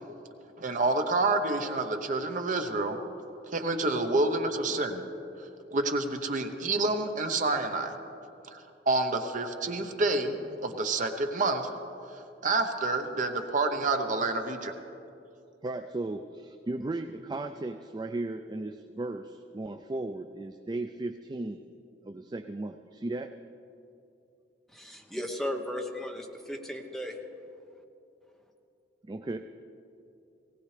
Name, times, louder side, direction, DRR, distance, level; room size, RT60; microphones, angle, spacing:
voice 1, 0.6-3.0 3.5-5.0 5.7-7.9 8.5-8.6 8.9-11.7 12.1-14.7, right 2 dB, 45° right, 6 dB, 0.9 m, -28 dB
voice 2, 15.6-21.6 22.0-23.3 29.1-29.4, right 2 dB, 25° right, 8 dB, 0.4 m, -36 dB
voice 3, 24.7-27.2, left 1 dB, ahead, 2 dB, 1.0 m, -36 dB
19.0 x 17.5 x 3.3 m, 2.7 s
head